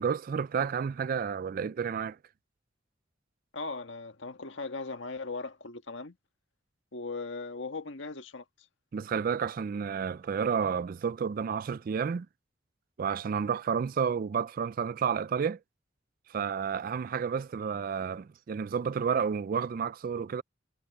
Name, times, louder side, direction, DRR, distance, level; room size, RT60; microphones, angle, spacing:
voice 1, 0.0-2.2 8.9-12.3 13.0-15.6 16.3-20.4, right 6 dB, 45° right, 0.3 m, -31 dB
voice 2, 3.5-6.2 6.9-8.4, left 3 dB, 70° left, 1.8 m, -38 dB
head